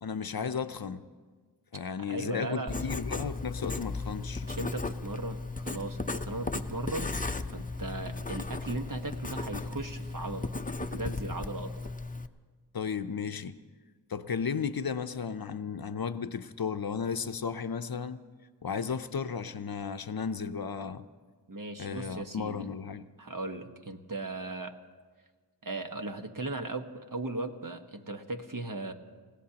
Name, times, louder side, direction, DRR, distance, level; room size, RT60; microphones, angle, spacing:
voice 1, 0.0-1.0 1.7-4.4 12.7-13.6 14.1-18.2 18.6-21.1 21.8-23.1, left 6 dB, 55° left, 11 dB, 0.7 m, -34 dB
voice 2, 2.0-2.9 4.4-7.2 7.5-10.5 10.8-11.7 21.5-22.7 23.2-24.7 25.6-28.9, right 2 dB, 50° right, 5 dB, 1.3 m, -37 dB
Writing, 2.7-12.3, left 3 dB, 20° left, 0.6 m, -36 dB
29.0 x 16.5 x 2.9 m, 1.4 s
wide cardioid pair, 40°, 42 cm